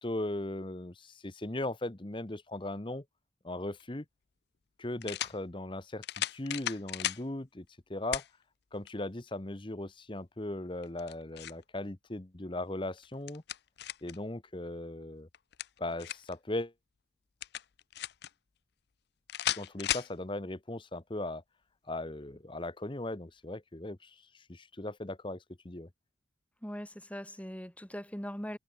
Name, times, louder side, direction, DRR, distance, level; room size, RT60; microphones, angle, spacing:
voice 1, 0.0-3.0 3.4-4.0 4.8-8.2 8.7-13.4 14.0-15.3 15.8-16.7 19.6-21.4 21.9-25.9, left 1 dB, 25° left, 1.0 m, -38 dB
sound 1, 3.8-3.9 5.0-5.4 6.0-7.2 8.1-8.3 8.9-9.0 10.8-11.6 13.0-14.2 15.3-16.3 17.4-18.3 19.3-20.1, left 12 dB, 55° left, 0.5 m, -35 dB
voice 2, 26.6-28.6, equal, 5° left, 3.2 m, -40 dB
head